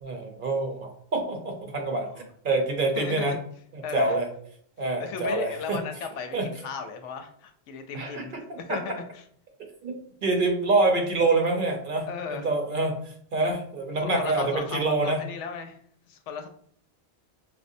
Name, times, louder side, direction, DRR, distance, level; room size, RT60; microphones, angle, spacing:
voice 1, 0.0-2.1 2.4-3.3 3.7-4.3 4.8-5.8 6.3-6.5 7.9-8.2 8.5-8.8 9.8-13.0 13.3-15.2, right 2 dB, 55° right, 3 dB, 0.7 m, -26 dB
voice 2, 3.0-3.4 3.8-4.2 5.0-9.2 12.1-12.5 14.0-15.8 16.1-16.5, left 5 dB, 90° left, 6 dB, 0.9 m, -36 dB
4.9 x 2.1 x 2.6 m, 0.62 s
omnidirectional pair, 1.2 m